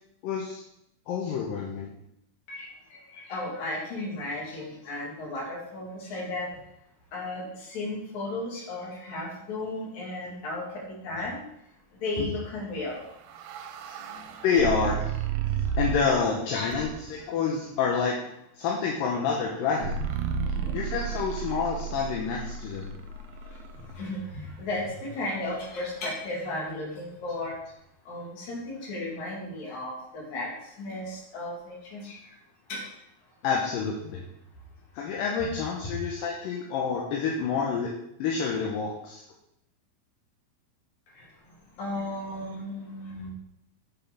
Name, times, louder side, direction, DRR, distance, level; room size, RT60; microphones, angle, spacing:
voice 1, 0.2-0.6 1.1-1.9 14.4-15.0 15.8-18.2 18.6-20.0 20.7-22.9 33.4-34.2 34.9-37.9 38.2-39.2, left 5 dB, 75° left, -1 dB, 2.4 m, -28 dB
voice 2, 2.5-6.5 7.1-11.4 12.0-13.0 14.1-14.2 20.4-20.8 23.9-27.6 28.1-32.2 32.7-32.8 41.8-43.3, left 2 dB, 55° left, -3 dB, 3.0 m, -34 dB
sound 1, 12.9-16.2 16.7-17.2 19.8-23.9, right 7 dB, 80° right, 2.2 m, -32 dB
8.1 x 5.9 x 3.5 m, 0.80 s
omnidirectional pair, 4.3 m